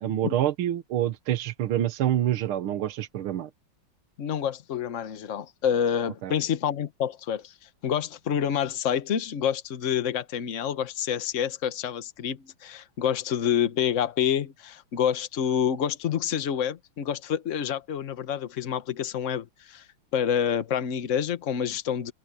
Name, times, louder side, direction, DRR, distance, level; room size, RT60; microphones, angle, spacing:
voice 1, 0.0-3.5 6.2-6.3, right 12 dB, 75° right, 1.8 m, -27 dB
voice 2, 4.2-7.5 7.8-19.8 20.1-22.1, left 8 dB, 40° left, 1.2 m, -28 dB
omnidirectional pair, 2.4 m